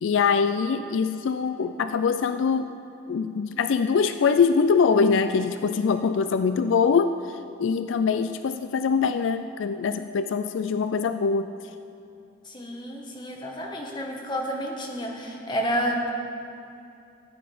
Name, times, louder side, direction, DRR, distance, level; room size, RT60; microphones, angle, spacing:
voice 1, 0.0-2.7 3.1-11.5, left 5 dB, 75° left, 10 dB, 0.4 m, -23 dB
voice 2, 12.4-16.1, equal, 25° left, 0 dB, 1.4 m, -30 dB
14.0 x 8.9 x 5.0 m, 2.6 s
head